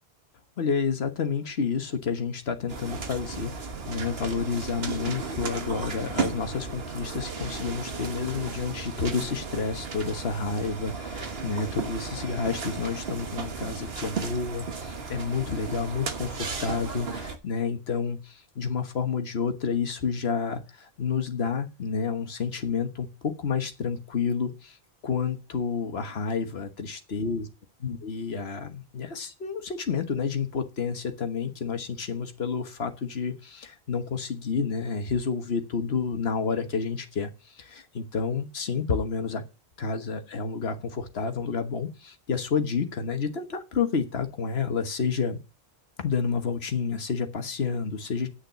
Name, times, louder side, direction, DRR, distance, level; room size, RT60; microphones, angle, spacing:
voice 1, 0.6-24.8 25.0-27.5 27.8-39.4 39.8-45.4 46.0-48.3, left 5 dB, 70° left, 7 dB, 1.5 m, -30 dB
sound 1, 2.7-17.4, right 4 dB, 65° right, 1.5 m, -35 dB
9.8 x 6.6 x 6.8 m, 0.32 s
omnidirectional pair, 1.1 m